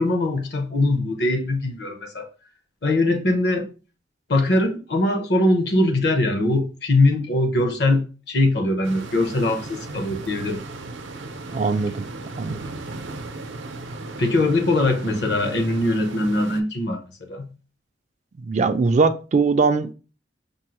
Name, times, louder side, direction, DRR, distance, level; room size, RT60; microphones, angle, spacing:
voice 1, 0.0-2.3 2.8-3.7 4.3-10.6 14.2-17.5, left 2 dB, 60° left, 0.8 m, -21 dB
sound 1, 8.8-16.6, right 2 dB, 80° right, 0.6 m, -36 dB
voice 2, 11.5-12.1 12.4-12.7 18.4-19.9, right 4 dB, 35° right, 0.3 m, -21 dB
5.3 x 2.0 x 2.9 m
head